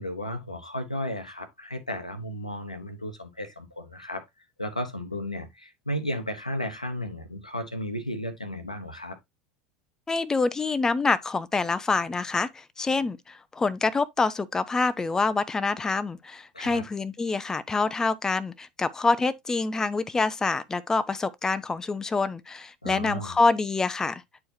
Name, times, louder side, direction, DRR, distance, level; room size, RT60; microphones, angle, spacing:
voice 1, 0.0-4.3 4.6-9.2 16.5-16.9 22.8-23.4, left 1 dB, 90° left, 1.1 m, -34 dB
voice 2, 10.1-24.2, left 3 dB, 15° left, 0.6 m, -26 dB
9.6 x 4.7 x 2.7 m
figure-of-eight pair, 75°, 4 cm